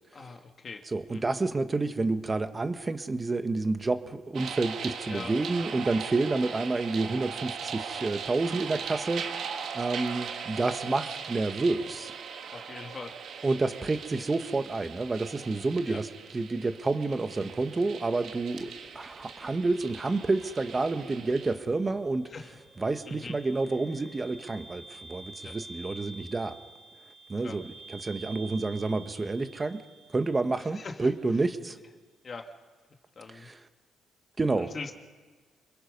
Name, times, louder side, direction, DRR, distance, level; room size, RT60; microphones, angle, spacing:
voice 1, 0.1-0.8 1.1-1.2 5.1-5.3 8.0-8.2 12.5-13.2 15.9-16.0 22.3-22.5 23.1-23.3 25.4-25.5 27.4-27.6 30.7-31.1 32.2-32.5 33.2-33.5 34.6-34.9, left 4 dB, 40° left, 4 dB, 2.2 m, -42 dB
voice 2, 0.9-12.1 13.4-22.3 22.8-26.5 27.3-29.8 30.1-31.8 33.3-33.6 34.4-34.7, right 3 dB, 25° right, 9 dB, 1.4 m, -29 dB
sound 1, 4.3-21.5, right 6 dB, 70° right, 1.9 m, -39 dB
sound 2, 18.1-31.1, right 2 dB, ahead, 3.4 m, -50 dB
28.0 x 22.0 x 5.4 m, 1.4 s
cardioid pair, 90°, 0 cm